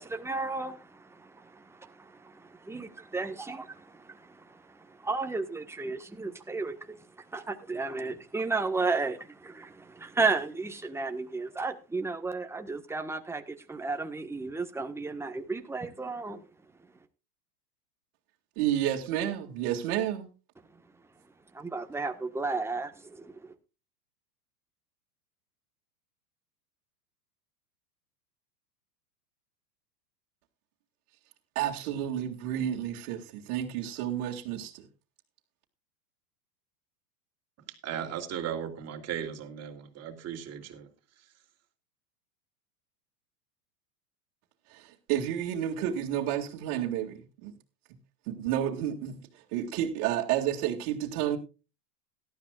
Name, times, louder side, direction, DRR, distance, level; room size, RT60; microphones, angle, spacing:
voice 1, 0.0-2.9 3.1-3.6 4.0-7.0 7.3-16.4 21.5-23.5, right 3 dB, 5° right, 1.4 m, -33 dB
voice 2, 18.6-20.3 31.5-34.9 44.7-47.5 48.3-49.2 49.5-51.4, right 11 dB, 55° right, 2.5 m, -30 dB
voice 3, 37.8-40.9, right 9 dB, 30° right, 3.0 m, -36 dB
18.0 x 12.5 x 2.4 m
hypercardioid pair, 115°, 48 cm